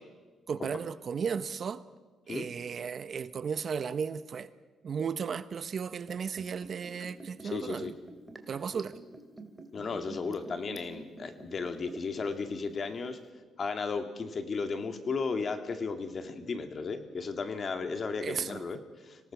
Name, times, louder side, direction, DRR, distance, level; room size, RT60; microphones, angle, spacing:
voice 1, 0.5-1.8 2.3-4.5 4.8-7.9 8.5-9.0 18.2-18.6, right 6 dB, 50° right, 0.9 m, -35 dB
Liquid, 6.0-12.2 12.5-12.6, right 3 dB, 15° right, 2.4 m, -47 dB
voice 2, 7.5-7.9 9.7-13.2 13.6-19.3, left 4 dB, 45° left, 2.2 m, -35 dB
26.0 x 18.0 x 6.0 m
cardioid pair, 90°, 0 cm